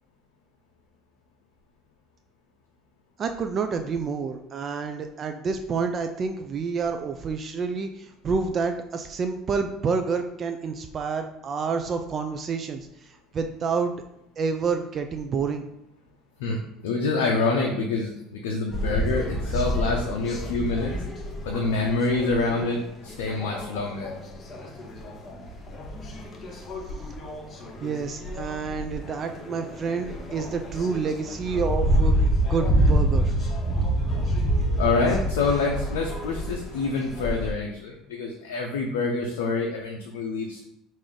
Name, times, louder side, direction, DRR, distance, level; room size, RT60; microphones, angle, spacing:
voice 1, 3.2-13.9 14.4-15.6 27.8-33.3, right 5 dB, 40° right, 6 dB, 0.3 m, -28 dB
voice 2, 16.4-20.9 21.4-24.1 34.8-40.6, left 3 dB, 85° left, 0 dB, 0.5 m, -26 dB
sound 1, 18.7-37.5, right 1 dB, 40° left, 0.8 m, -28 dB
3.3 x 2.5 x 3.8 m, 0.81 s
hypercardioid pair, 80°, 0 cm